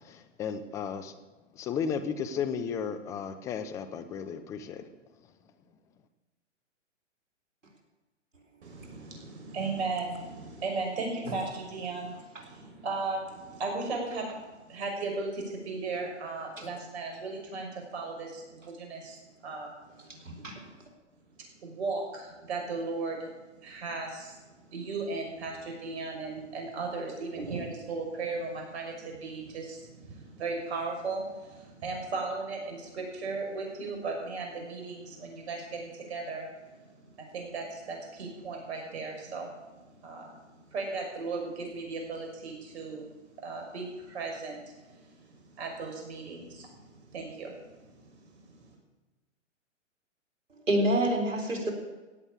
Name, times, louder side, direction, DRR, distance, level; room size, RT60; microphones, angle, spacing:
voice 1, 0.4-1.1 1.6-4.8, left 7 dB, 10° left, 10 dB, 0.4 m, -33 dB
voice 2, 8.6-19.2 19.4-19.7 21.6-23.3 23.6-24.4 24.7-48.7, right 3 dB, 60° right, 1 dB, 5.9 m, -36 dB
voice 3, 20.2-20.6 50.7-51.7, right 1 dB, 90° right, 2 dB, 3.9 m, -27 dB
16.5 x 7.2 x 8.6 m, 1.2 s
hypercardioid pair, 130°, 37 cm